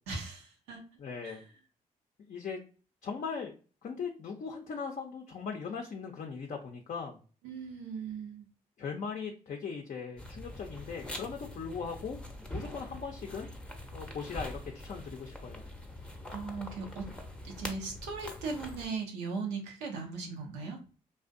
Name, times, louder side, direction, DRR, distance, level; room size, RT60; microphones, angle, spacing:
voice 1, 0.1-0.8 1.2-1.5 7.4-8.5 16.3-17.1 17.4-20.8, right 4 dB, 85° right, 1 dB, 0.6 m, -38 dB
voice 2, 1.0-1.4 2.3-2.6 3.0-3.5 3.8-7.2 8.8-12.2 12.5-13.5 13.9-15.6, left 5 dB, 45° left, 2 dB, 0.5 m, -39 dB
sound 1, 10.2-18.9, left 1 dB, 5° left, 0.6 m, -44 dB
2.4 x 2.0 x 2.5 m, 0.37 s
hypercardioid pair, 45°, 17 cm